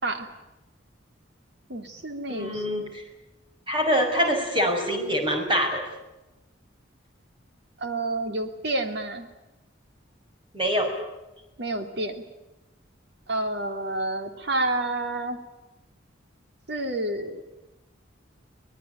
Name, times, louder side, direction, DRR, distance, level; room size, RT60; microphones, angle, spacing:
voice 1, 1.7-2.7 7.8-9.3 11.6-12.1 13.3-15.4 16.7-17.4, right 2 dB, 60° right, 6 dB, 2.9 m, -29 dB
voice 2, 2.3-3.0 3.7-5.8 10.5-10.9, equal, 25° right, 3 dB, 6.2 m, -24 dB
24.0 x 19.5 x 9.4 m, 0.98 s
head